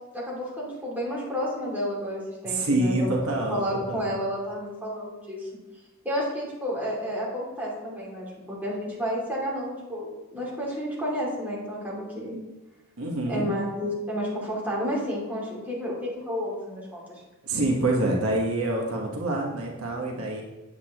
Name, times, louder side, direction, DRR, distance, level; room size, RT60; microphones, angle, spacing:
voice 1, 0.1-5.5 6.0-12.4 13.3-17.0, equal, 10° right, -6 dB, 2.5 m, -31 dB
voice 2, 2.4-4.0 13.0-13.5 17.4-20.4, right 2 dB, 75° right, -1 dB, 1.3 m, -26 dB
8.3 x 8.3 x 3.0 m, 1.1 s
head